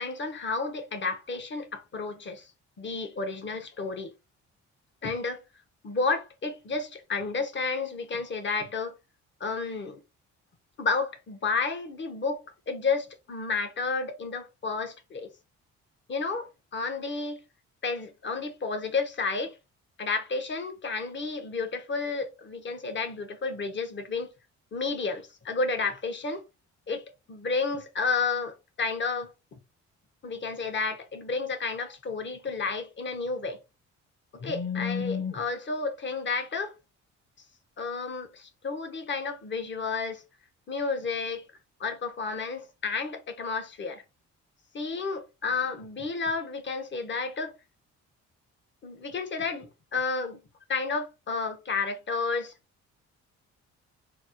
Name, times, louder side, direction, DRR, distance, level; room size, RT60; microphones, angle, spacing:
voice 1, 0.0-2.5 2.8-4.1 5.0-5.4 5.8-8.9 9.4-10.0 10.8-15.3 16.1-17.4 17.8-19.5 20.0-24.3 24.7-26.4 26.9-27.0 27.3-29.6 30.2-33.6 34.4-36.7 37.8-40.2 40.7-41.4 41.8-44.0 44.7-47.5 48.8-50.4 50.7-52.5, left 4 dB, 40° left, 0.9 m, -31 dB
4.1 x 2.1 x 2.9 m
cardioid pair, 90°, 30 cm